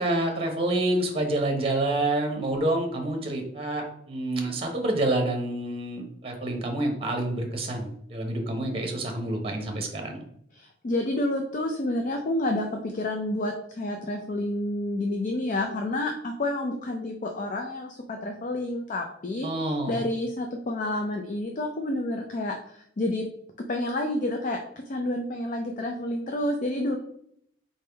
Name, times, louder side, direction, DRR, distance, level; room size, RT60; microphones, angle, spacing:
voice 1, 0.0-10.2 19.4-20.1, right 1 dB, 30° right, 3 dB, 0.8 m, -28 dB
voice 2, 10.5-23.2 23.6-24.6 24.9-27.0, left 1 dB, 45° left, 3 dB, 0.4 m, -29 dB
4.2 x 3.4 x 3.4 m, 0.69 s
head